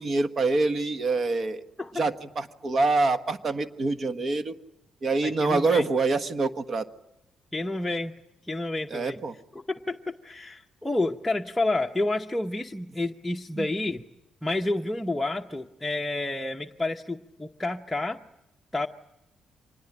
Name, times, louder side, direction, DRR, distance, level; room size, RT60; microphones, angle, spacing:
voice 1, 0.0-1.6 1.9-4.5 5.0-6.9 8.9-9.3 13.6-13.7, right 3 dB, 45° right, 10 dB, 1.4 m, -25 dB
voice 2, 5.2-5.9 7.5-8.1 8.5-9.2 9.5-14.0 14.4-18.2 18.7-18.9, left 2 dB, 10° left, 1 dB, 1.0 m, -29 dB
25.5 x 20.0 x 10.0 m, 0.89 s
cardioid pair, 90°, 0 cm